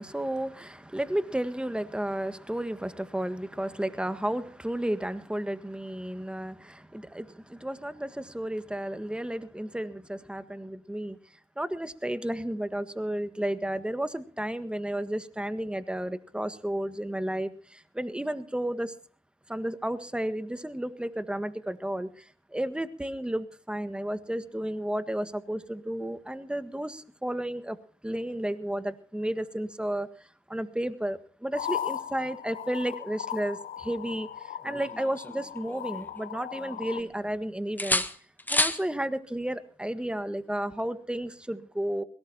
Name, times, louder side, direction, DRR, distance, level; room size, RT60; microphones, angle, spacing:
voice 1, 0.0-11.2 11.6-18.9 19.5-27.8 28.0-30.1 30.5-38.0 38.5-42.0, right 1 dB, 5° right, 13 dB, 1.6 m, -32 dB
sound 1, 31.5-37.0, left 9 dB, 75° left, 0.8 m, -37 dB
sound 2, 34.6-36.2 36.6-37.4 37.8-38.8 40.7-40.9, left 1 dB, 10° left, 1.4 m, -31 dB
21.5 x 17.5 x 2.9 m, 0.42 s
supercardioid pair, 45°, 14 cm